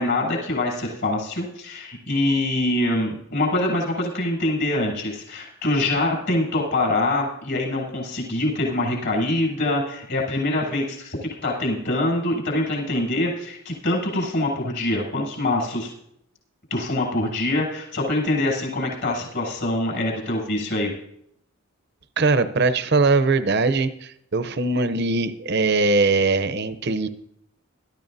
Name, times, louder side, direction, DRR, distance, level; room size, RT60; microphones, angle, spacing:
voice 1, 0.0-11.2 11.4-15.9 16.7-20.9, left 1 dB, 60° left, -2 dB, 7.2 m, -24 dB
voice 2, 22.2-27.1, right 3 dB, 50° right, 13 dB, 0.7 m, -21 dB
21.0 x 13.5 x 2.7 m, 0.73 s
head